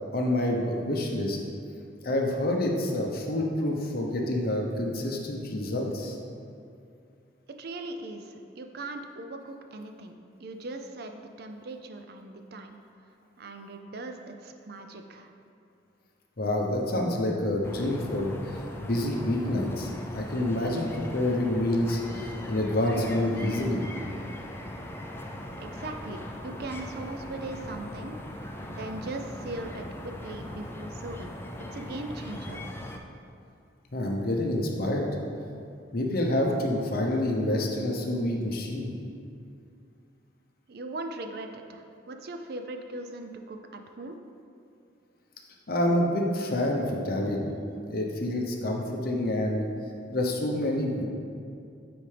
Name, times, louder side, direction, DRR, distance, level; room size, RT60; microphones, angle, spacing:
voice 1, 0.1-1.4 2.0-6.2 16.4-23.8 33.9-35.1 35.9-38.9 45.7-47.5 47.9-49.6 50.1-51.1, left 1 dB, 50° left, 0 dB, 0.8 m, -28 dB
voice 2, 7.6-10.1 10.4-12.8 13.4-15.3 25.6-28.2 28.7-31.3 31.7-32.6 40.7-44.2, right 2 dB, 55° right, 5 dB, 0.4 m, -39 dB
sound 1, 17.6-33.0, left 1 dB, 10° left, 0.3 m, -40 dB
9.0 x 4.3 x 3.3 m, 2.5 s
head